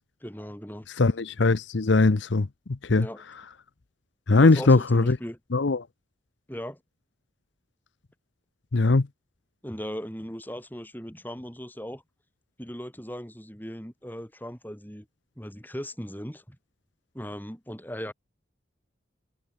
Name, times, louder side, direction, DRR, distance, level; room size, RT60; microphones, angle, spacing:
voice 1, 0.2-0.9 3.0-3.2 4.3-5.4 6.5-6.8 9.6-12.0 12.6-15.1 15.4-16.6 17.1-18.1, equal, 10° left, 3.7 m, -38 dB
voice 2, 1.0-2.5 2.8-3.1 4.3-5.2 5.5-5.8 8.7-9.1, left 3 dB, 70° left, 0.7 m, -20 dB
head